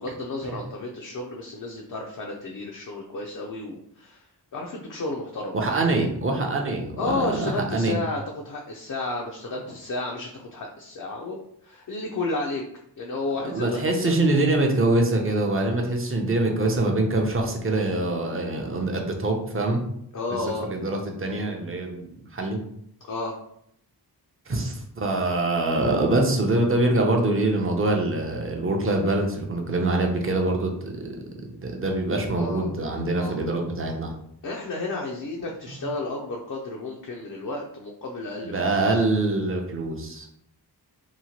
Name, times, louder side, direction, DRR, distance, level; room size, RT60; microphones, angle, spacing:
voice 1, 0.0-5.8 7.0-12.6 13.0-14.4 20.1-20.7 23.0-23.4 32.4-32.7 33.1-33.4 34.4-39.0, left 2 dB, 50° left, 0 dB, 0.4 m, -32 dB
voice 2, 5.5-8.0 13.5-19.8 20.6-22.6 24.5-31.2 31.4-34.1 38.5-40.3, right 2 dB, 35° right, 2 dB, 0.5 m, -24 dB
2.9 x 2.1 x 2.8 m, 0.71 s
wide cardioid pair, 80°, 40 cm